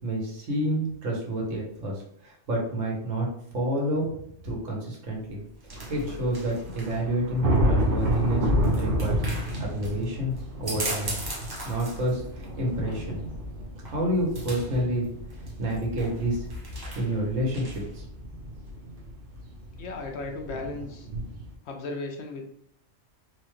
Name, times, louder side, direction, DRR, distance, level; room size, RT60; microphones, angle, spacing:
voice 1, 0.0-4.1 4.4-5.4 5.9-8.5 8.8-11.2 11.6-13.2 13.8-15.1 15.6-16.4 16.9-18.0, right 1 dB, 85° right, -2 dB, 1.4 m, -29 dB
sound 1, 5.0-18.0, right 1 dB, 25° right, 0.5 m, -40 dB
sound 2, 5.7-21.5, equal, 55° right, 0.8 m, -31 dB
voice 2, 19.8-21.1 21.6-22.4, left 3 dB, 65° left, 3 dB, 0.9 m, -35 dB
4.2 x 2.2 x 3.1 m, 0.70 s
omnidirectional pair, 1.3 m